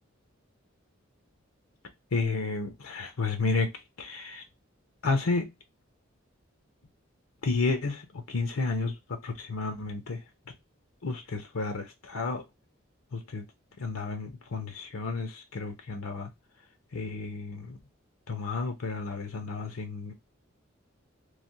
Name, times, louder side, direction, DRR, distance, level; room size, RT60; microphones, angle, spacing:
voice 1, 2.1-3.7 4.0-4.4 5.0-5.5 7.4-10.2 11.0-12.4 13.1-13.4 13.8-16.3 16.9-17.8 18.3-20.1, left 3 dB, 85° left, 0.7 m, -31 dB
3.2 x 2.1 x 2.6 m
head